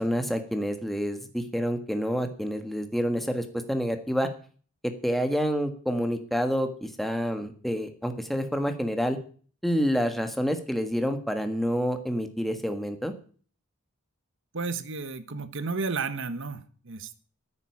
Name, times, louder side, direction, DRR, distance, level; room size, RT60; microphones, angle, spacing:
voice 1, 0.0-4.3 5.0-9.2 9.6-13.1, equal, ahead, 6 dB, 1.6 m, -28 dB
voice 2, 14.5-17.2, right 4 dB, 60° right, 12 dB, 1.2 m, -32 dB
10.0 x 9.6 x 8.6 m, 0.43 s
head